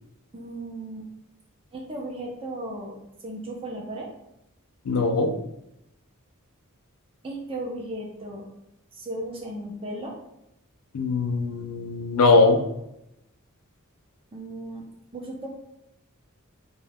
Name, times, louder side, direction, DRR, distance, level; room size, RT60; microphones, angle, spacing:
voice 1, 0.3-1.0 1.7-3.0 3.2-4.1 7.2-8.4 8.9-10.2 14.3-14.8 15.1-15.5, right 1 dB, 25° right, -1 dB, 0.5 m, -35 dB
voice 2, 4.9-5.3 10.9-12.6, left 3 dB, 75° left, 5 dB, 0.4 m, -21 dB
2.2 x 2.2 x 3.3 m, 0.83 s
head